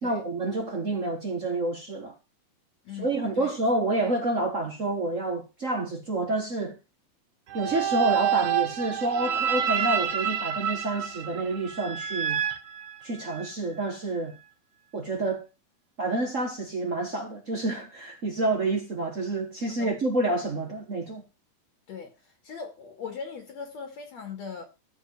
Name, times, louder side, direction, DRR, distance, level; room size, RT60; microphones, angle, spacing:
voice 1, 0.0-2.1 2.9-6.8 7.5-12.4 13.0-14.4 14.9-15.4 16.0-21.2, right 2 dB, 65° right, 0.7 m, -28 dB
sound 1, 7.5-13.5, right 9 dB, 85° right, 1.1 m, -28 dB
voice 2, 21.9-24.7, left 6 dB, 55° left, 2.5 m, -39 dB
14.5 x 5.1 x 6.6 m
omnidirectional pair, 4.1 m